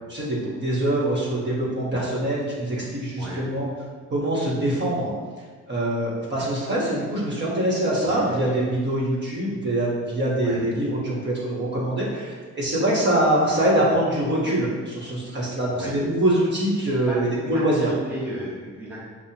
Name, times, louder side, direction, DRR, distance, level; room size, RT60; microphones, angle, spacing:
voice 1, 0.1-3.7 4.1-5.1 5.7-17.9, right 1 dB, 35° right, -5 dB, 1.2 m, -24 dB
voice 2, 8.0-8.6 10.4-10.6 15.7-16.0 16.8-19.0, equal, 5° right, -8 dB, 0.9 m, -35 dB
5.3 x 2.1 x 2.9 m, 1.5 s
cardioid pair, 90°, 30 cm